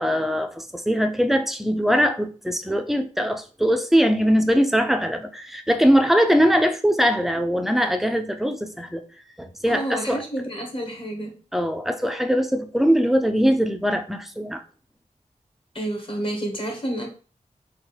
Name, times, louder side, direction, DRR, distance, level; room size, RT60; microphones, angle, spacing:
voice 1, 0.0-9.0 9.4-10.2 11.5-14.6, equal, ahead, 0.5 m, -21 dB
voice 2, 9.7-11.4 15.7-17.1, right 1 dB, 40° left, 1.2 m, -29 dB
3.6 x 2.4 x 4.0 m
wide cardioid pair, 75°, 14 cm